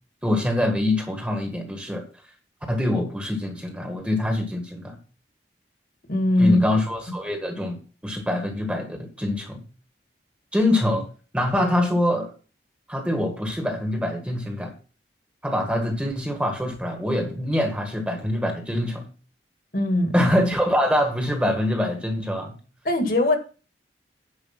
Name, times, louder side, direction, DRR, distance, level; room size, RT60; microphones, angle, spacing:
voice 1, 0.2-2.1 2.7-5.0 6.4-9.6 10.5-11.1 11.3-12.3 12.9-14.7 15.4-19.1 20.1-22.6, left 1 dB, 5° right, 1.6 m, -24 dB
voice 2, 6.1-6.6 19.7-20.1 22.9-23.4, left 2 dB, 50° left, 1.7 m, -20 dB
9.9 x 5.2 x 5.8 m
head